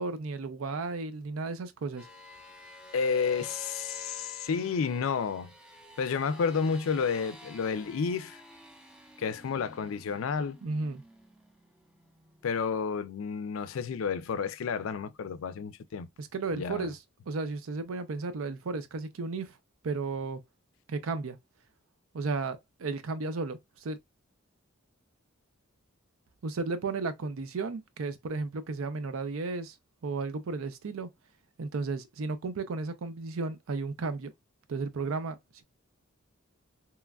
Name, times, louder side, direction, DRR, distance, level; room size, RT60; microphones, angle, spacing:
voice 1, 0.0-2.1 10.6-11.0 16.2-17.0 17.3-19.6 19.8-20.4 20.9-21.4 22.1-24.0 26.4-29.8 30.0-31.1 31.6-34.3 34.7-35.6, right 3 dB, 90° right, 0.5 m, -34 dB
sound 1, 2.0-12.8, left 1 dB, 5° right, 0.5 m, -50 dB
voice 2, 2.9-5.5 6.0-8.4 9.2-10.6 12.4-16.1 16.5-16.9, left 5 dB, 75° left, 0.4 m, -31 dB
3.0 x 2.3 x 2.2 m
head